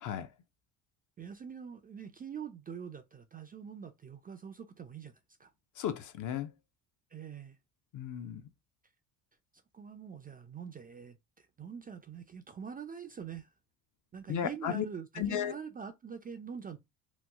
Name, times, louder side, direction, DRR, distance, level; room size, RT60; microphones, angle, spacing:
voice 1, 0.0-0.3 5.8-6.5 7.9-8.5 14.3-14.9 15.2-15.6, left 9 dB, 45° left, 0.6 m, -34 dB
voice 2, 1.2-5.5 7.1-7.6 9.7-13.5 14.1-16.8, right 7 dB, 20° right, 0.4 m, -44 dB
3.0 x 2.0 x 3.4 m
supercardioid pair, 80°, 44 cm